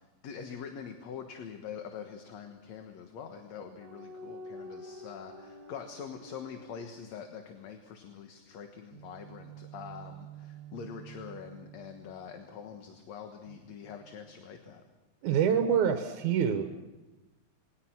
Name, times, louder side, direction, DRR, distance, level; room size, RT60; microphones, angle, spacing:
voice 1, 0.0-14.8, left 7 dB, 70° left, 5 dB, 2.6 m, -44 dB
sound 1, 3.8-7.5 8.9-12.7 13.5-14.7, right 2 dB, 70° right, 3.5 m, -49 dB
voice 2, 15.2-16.6, right 8 dB, 85° right, 6 dB, 2.6 m, -26 dB
27.5 x 21.5 x 6.0 m, 1.1 s
omnidirectional pair, 3.3 m